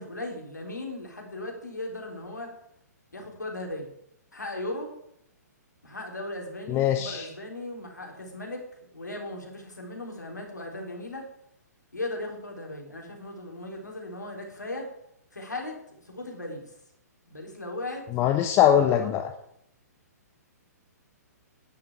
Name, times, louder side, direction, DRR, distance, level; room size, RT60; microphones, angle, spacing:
voice 1, 0.0-2.5 3.1-3.9 4.3-4.9 5.8-8.6 8.9-11.3 11.9-14.9 15.3-15.7 16.1-16.6 17.3-18.0 18.5-19.2, left 2 dB, 85° left, 1 dB, 3.8 m, -37 dB
voice 2, 6.7-7.3 18.1-19.3, left 10 dB, 25° left, 6 dB, 0.9 m, -22 dB
10.5 x 7.2 x 7.3 m, 0.75 s
figure-of-eight pair, 120°, 9 cm